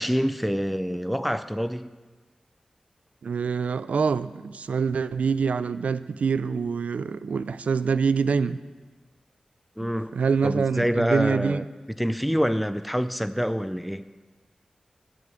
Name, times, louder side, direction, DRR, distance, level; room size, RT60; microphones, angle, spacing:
voice 1, 0.0-1.9 9.8-10.2 10.4-11.6 12.0-14.1, equal, ahead, 0.4 m, -26 dB
voice 2, 3.2-8.6 9.8-11.6, right 5 dB, 85° right, 0.4 m, -25 dB
9.4 x 9.3 x 7.5 m
wide cardioid pair, 85°, 2 cm